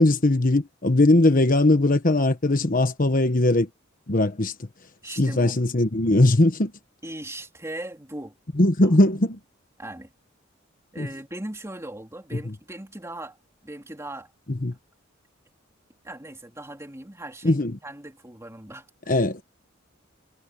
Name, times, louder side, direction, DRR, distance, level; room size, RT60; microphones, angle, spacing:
voice 1, 0.0-3.7 4.1-4.5 5.2-6.7 8.6-9.4 11.0-11.1 14.5-14.7 17.4-17.8 19.1-19.4, left 2 dB, 45° left, 1.2 m, -20 dB
voice 2, 5.0-5.5 7.0-8.3 9.8-10.1 10.9-13.4 13.6-14.3 16.0-19.4, right 1 dB, 15° right, 3.0 m, -39 dB
head